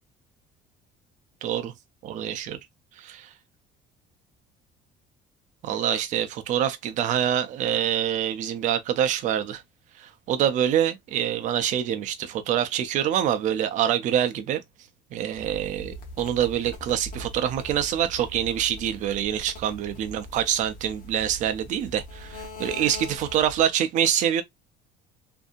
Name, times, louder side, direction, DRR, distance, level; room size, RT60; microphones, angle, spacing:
voice 1, 1.4-1.7 2.0-2.6 3.0-3.3 5.6-9.6 10.0-14.6 15.1-24.4, right 10 dB, 40° right, 0.4 m, -25 dB
sound 1, 15.3-23.7, equal, 45° left, 0.9 m, -41 dB
2.6 x 2.6 x 2.3 m
cardioid pair, 180°, 19 cm